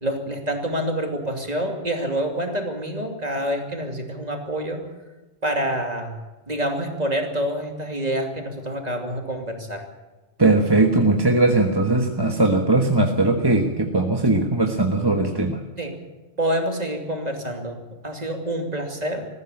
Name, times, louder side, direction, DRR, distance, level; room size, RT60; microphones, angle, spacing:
voice 1, 0.0-4.9 5.4-6.1 6.5-9.8 15.8-16.0 16.4-17.8 18.0-19.3, right 1 dB, 40° right, 3 dB, 2.8 m, -27 dB
voice 2, 10.4-15.6, right 2 dB, 20° right, 3 dB, 1.4 m, -19 dB
20.0 x 15.0 x 8.6 m, 1.1 s
omnidirectional pair, 1.1 m